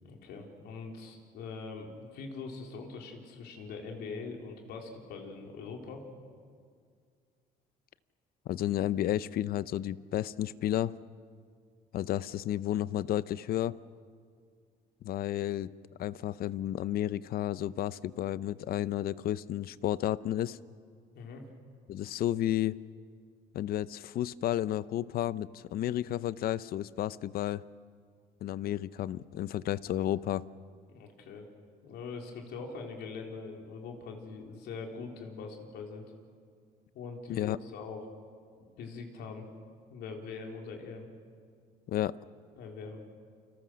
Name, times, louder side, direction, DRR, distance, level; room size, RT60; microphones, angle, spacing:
voice 1, 0.0-6.0 21.1-21.5 30.9-31.5 31.8-36.1 36.9-38.0 38.6-39.5 39.9-41.1 42.5-43.1, left 4 dB, 80° left, 2 dB, 4.0 m, -43 dB
voice 2, 8.5-10.9 11.9-13.7 15.0-15.7 16.0-20.6 21.9-22.8 23.5-27.6 28.4-30.4 37.3-37.6 41.9-42.2, left 12 dB, 60° left, 17 dB, 0.7 m, -32 dB
29.0 x 26.0 x 6.4 m, 2.1 s
cardioid pair, 110°, 17 cm